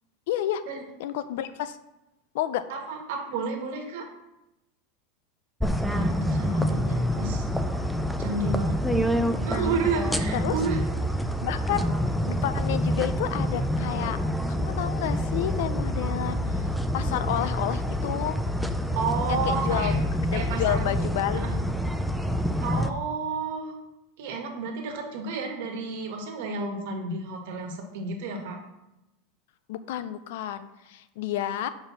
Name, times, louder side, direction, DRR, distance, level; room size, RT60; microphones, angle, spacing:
voice 1, 0.3-0.6 1.0-1.8 2.3-2.7 6.5-6.7 9.5-9.7 10.3-10.6 11.4-11.9 12.2-14.2 14.5-18.4 19.3-20.0 20.3-21.4 29.7-31.7, left 11 dB, 70° left, 13 dB, 0.4 m, -30 dB
voice 2, 2.7-4.1 5.8-7.5 8.2-8.8 9.4-10.8 18.9-20.0 20.3-20.8 21.3-21.6 22.6-23.7 24.2-28.6, right 4 dB, 65° right, 2 dB, 1.4 m, -31 dB
sound 1, 5.6-22.9, equal, ahead, 0.3 m, -27 dB
5.2 x 4.2 x 6.0 m, 0.94 s
supercardioid pair, 150°, 0 cm